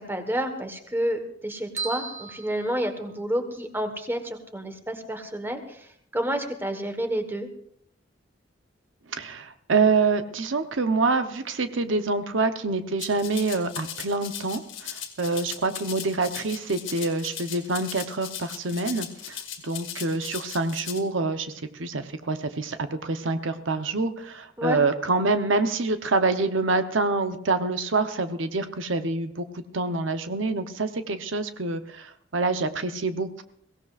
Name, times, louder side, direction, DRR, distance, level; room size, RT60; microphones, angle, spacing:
voice 1, 0.0-5.8 6.1-7.5 24.6-24.8, equal, 10° right, 7 dB, 1.3 m, -29 dB
sound 1, 1.8-3.5, right 4 dB, 40° right, 1.1 m, -37 dB
voice 2, 9.1-33.4, right 3 dB, 85° right, 9 dB, 0.9 m, -26 dB
Rattle (instrument), 13.0-21.0, left 9 dB, 85° left, 2.0 m, -38 dB
22.5 x 16.5 x 2.5 m, 0.67 s
head